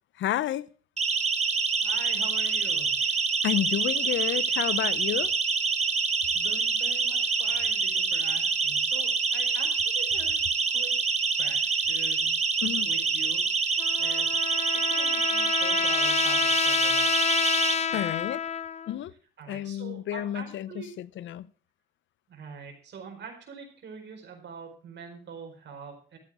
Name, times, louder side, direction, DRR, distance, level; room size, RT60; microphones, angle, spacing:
voice 1, 0.2-0.7 3.4-5.3 12.6-12.9 17.9-18.4 18.9-19.1 19.5-21.5, left 12 dB, 75° left, 0.7 m, -30 dB
Siren, 1.0-17.7, right 5 dB, 35° right, 1.6 m, -26 dB
voice 2, 1.8-3.0 6.3-10.4 10.7-10.9 11.4-12.3 12.8-14.3 14.7-17.2 17.9-18.1 19.4-20.9 22.3-26.2, right 5 dB, 60° right, 4.6 m, -44 dB
Trumpet, 13.8-18.9, left 7 dB, 35° left, 0.6 m, -28 dB
13.5 x 8.9 x 6.1 m
cardioid pair, 90°, 20 cm